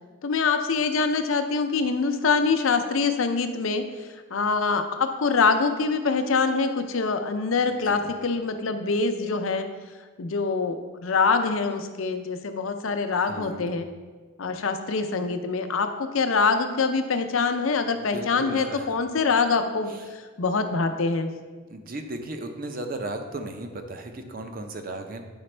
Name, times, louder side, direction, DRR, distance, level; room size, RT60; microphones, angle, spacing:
voice 1, 0.2-9.7 10.2-13.9 14.4-21.3, left 4 dB, 80° left, 8 dB, 0.6 m, -24 dB
voice 2, 7.6-8.1 13.1-13.7 17.9-19.0 19.9-20.0 21.7-25.2, right 2 dB, 45° right, 6 dB, 0.6 m, -36 dB
8.8 x 5.1 x 3.3 m, 1.4 s
head